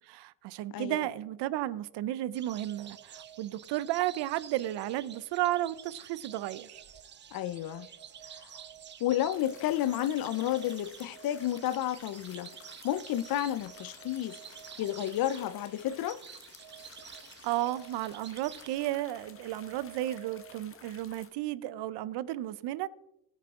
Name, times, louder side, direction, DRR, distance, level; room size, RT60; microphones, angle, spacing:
voice 1, 0.0-6.8 17.4-22.9, right 14 dB, 65° right, 0.7 m, -33 dB
voice 2, 0.7-1.1 7.3-7.9 8.3-8.5 9.0-12.5 12.8-14.4 14.8-16.2, left 12 dB, 50° left, 0.6 m, -31 dB
sound 1, 2.3-18.8, right 9 dB, 25° right, 0.5 m, -51 dB
sound 2, 2.5-21.0, right 9 dB, 45° right, 1.8 m, -56 dB
sound 3, 9.3-21.3, left 6 dB, 30° left, 1.2 m, -54 dB
18.5 x 7.4 x 3.7 m
cardioid pair, 140°, 44 cm